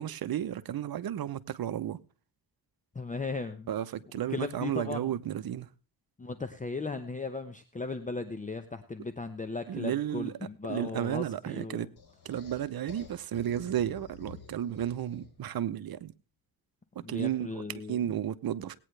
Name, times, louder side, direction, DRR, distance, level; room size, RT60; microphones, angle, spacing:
voice 1, 0.0-2.0 3.7-5.7 9.7-10.3 10.7-11.9 12.2-16.1 17.0-18.8, right 11 dB, 65° right, 0.8 m, -33 dB
voice 2, 2.9-3.7 4.3-5.1 6.2-11.9 17.0-18.0, left 4 dB, 20° left, 0.8 m, -37 dB
sound 1, 12.0-15.5, left 7 dB, 75° left, 3.6 m, -51 dB
18.5 x 9.2 x 3.2 m
cardioid pair, 95°, 38 cm